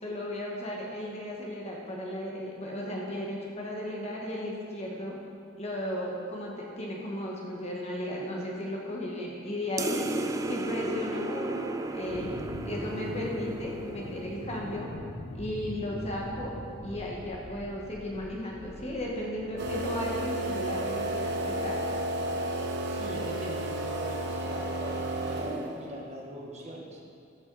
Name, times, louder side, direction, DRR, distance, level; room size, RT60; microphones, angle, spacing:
voice 1, 0.0-5.1 5.6-10.1 10.5-12.4 12.6-14.9 15.3-21.8, left 1 dB, 35° left, -2 dB, 1.3 m, -35 dB
sound 1, 9.8-14.7, right 2 dB, 15° right, 0.4 m, -34 dB
sound 2, 12.0-25.7, left 1 dB, 65° left, 1.5 m, -44 dB
sound 3, 19.6-25.9, right 1 dB, 60° right, 1.0 m, -32 dB
voice 2, 22.8-25.5 25.8-27.0, right 1 dB, 35° right, -2 dB, 1.5 m, -41 dB
14.0 x 7.1 x 4.0 m, 2.4 s
head